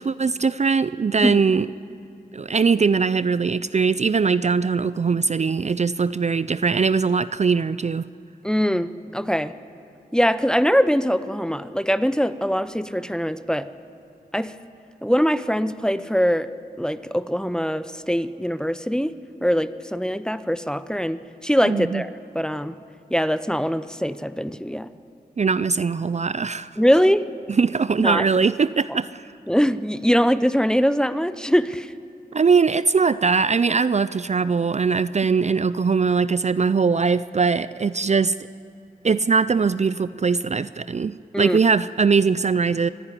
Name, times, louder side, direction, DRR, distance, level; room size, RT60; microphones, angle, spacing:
voice 1, 0.0-1.7 2.3-8.0 21.6-22.0 25.4-26.8 27.5-29.3 32.3-38.3 39.0-42.9, right 5 dB, 45° right, 15 dB, 0.4 m, -21 dB
voice 2, 8.4-9.5 10.1-13.7 14.3-14.5 15.0-16.5 16.8-19.1 19.4-22.8 23.1-24.9 26.8-27.3 28.0-28.2 29.5-31.9 41.3-41.6, equal, 5° left, 14 dB, 0.6 m, -22 dB
24.5 x 11.0 x 9.9 m, 2.6 s
cardioid pair, 50°, 17 cm